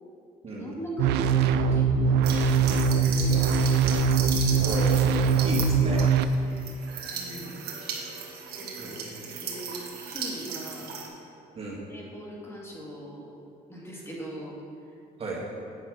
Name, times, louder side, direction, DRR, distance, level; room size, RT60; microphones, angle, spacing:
voice 1, 0.5-3.9 6.3-6.7 7.1-7.7 8.6-10.9 11.9-13.3 13.7-14.6, right 1 dB, 15° left, -4 dB, 1.9 m, -40 dB
sound 1, 1.0-6.2, right 5 dB, 85° right, 0.4 m, -22 dB
sound 2, 2.2-11.1, right 6 dB, 70° right, 1.4 m, -36 dB
voice 2, 4.6-5.1 5.4-6.0 8.7-9.1 11.6-11.8 15.2-15.4, right 2 dB, 35° right, -3 dB, 1.8 m, -34 dB
8.7 x 5.6 x 6.3 m, 2.5 s
cardioid pair, 110°, 17 cm